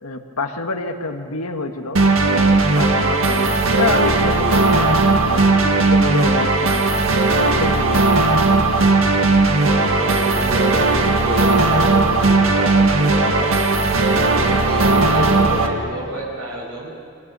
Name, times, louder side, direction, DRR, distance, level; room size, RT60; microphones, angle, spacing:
voice 1, 0.0-7.1 7.4-8.3, left 3 dB, 85° left, 5 dB, 1.7 m, -27 dB
sound 1, 2.0-15.7, right 3 dB, 65° right, 2.0 m, -16 dB
voice 2, 9.6-13.5 14.1-16.9, right 1 dB, 85° right, -2 dB, 7.1 m, -28 dB
28.5 x 24.0 x 6.9 m, 2.6 s
head